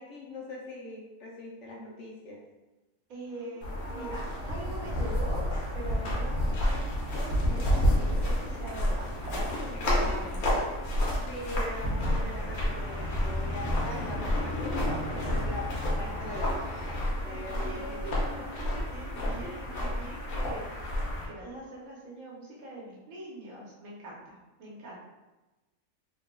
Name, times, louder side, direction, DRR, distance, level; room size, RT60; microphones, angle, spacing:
voice 1, 0.0-2.4 9.7-10.3 10.8-14.8 15.1-18.9 19.4-19.6, left 1 dB, 65° left, -2 dB, 0.9 m, -42 dB
Livestock farm animals working animals, 3.1-6.5 6.8-8.1 11.9-13.1, equal, 35° left, 1.1 m, -51 dB
voice 2, 3.1-10.4 17.2-18.6 18.9-20.7 21.2-25.0, right 1 dB, 75° right, -4 dB, 1.3 m, -43 dB
sound 1, 3.6-21.3, left 1 dB, 80° left, 1.3 m, -30 dB
4.0 x 2.9 x 2.2 m, 1.1 s
omnidirectional pair, 1.5 m